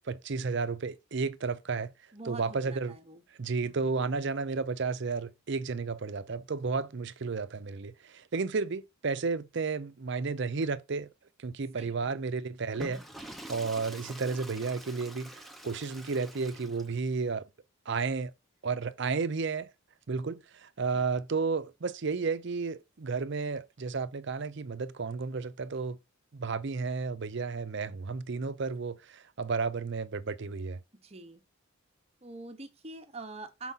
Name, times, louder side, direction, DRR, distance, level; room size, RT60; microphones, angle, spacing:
voice 1, 0.0-1.9 2.2-3.0 3.4-11.1 11.4-13.0 13.5-17.5 17.9-18.3 18.6-19.7 20.1-26.0 26.3-30.8, right 4 dB, 55° right, 0.5 m, -32 dB
voice 2, 2.1-3.2 3.6-3.9 11.7-12.1 20.9-21.0 31.0-31.4 32.2-33.7, right 2 dB, 30° right, 0.9 m, -45 dB
Water / Toilet flush, 12.6-17.2, equal, ahead, 0.6 m, -46 dB
7.0 x 4.6 x 4.0 m
head